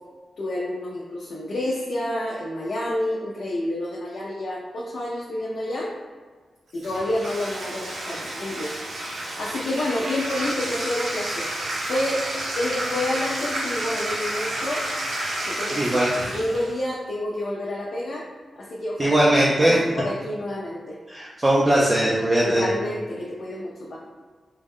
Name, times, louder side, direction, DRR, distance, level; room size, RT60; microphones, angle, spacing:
voice 1, 0.4-5.9 6.7-8.7 9.0-11.5 11.9-12.3 12.6-14.8 15.4-18.2 18.6-19.3 19.6-21.0 22.4-24.0, left 1 dB, 65° left, -6 dB, 0.6 m, -29 dB
Bathtub (filling or washing), 6.8-16.8, right 1 dB, 90° right, 0.8 m, -30 dB
voice 2, 15.7-16.1 19.0-19.8 21.1-22.7, right 1 dB, 20° right, -5 dB, 0.4 m, -20 dB
3.5 x 2.2 x 3.6 m, 1.5 s
wide cardioid pair, 145°, 0 cm